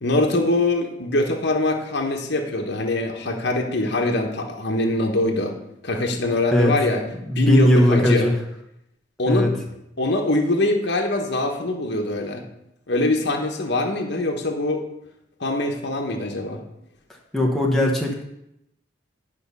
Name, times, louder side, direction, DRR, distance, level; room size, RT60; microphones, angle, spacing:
voice 1, 0.0-5.5 5.8-7.0 7.3-8.3 9.2-9.5 10.0-12.4 12.9-14.8 15.4-16.6, left 2 dB, 55° left, 2 dB, 1.1 m, -23 dB
voice 2, 7.3-8.3 9.3-9.5 17.3-18.2, equal, ahead, -2 dB, 1.0 m, -18 dB
10.5 x 5.7 x 5.5 m, 0.80 s
head